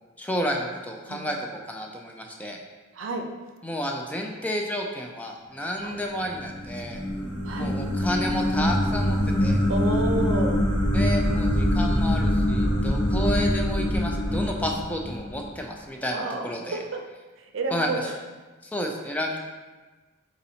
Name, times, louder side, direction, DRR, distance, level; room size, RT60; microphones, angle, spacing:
voice 1, 0.2-2.6 3.6-7.0 7.6-9.6 10.9-16.8 17.7-18.1 18.6-19.5, equal, 10° left, 1 dB, 0.4 m, -31 dB
voice 2, 2.9-3.3 5.8-6.0 7.4-7.8 9.7-10.6 16.1-17.0 17.4-18.2, right 2 dB, 85° right, 4 dB, 0.5 m, -31 dB
sound 1, 6.3-15.5, left 1 dB, 65° left, 1.0 m, -24 dB
4.1 x 4.1 x 2.8 m, 1.3 s
head